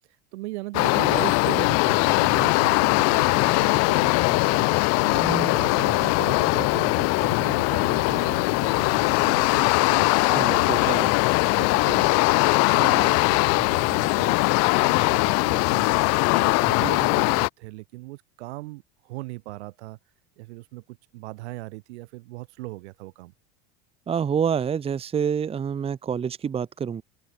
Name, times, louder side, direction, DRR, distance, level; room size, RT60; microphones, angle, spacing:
voice 1, 0.3-4.7 5.0-5.2 5.5-10.9 11.4-12.1 12.6-14.4 14.8-15.9 16.3-20.0 20.4-23.3, right 20 dB, 90° right, 5.8 m, -38 dB
sound 1, 0.7-17.5, left 27 dB, 50° left, 1.0 m, -21 dB
voice 2, 5.2-5.6 10.3-11.1 24.1-27.0, right 7 dB, 20° right, 1.3 m, -27 dB
open air
cardioid pair, 155°, 32 cm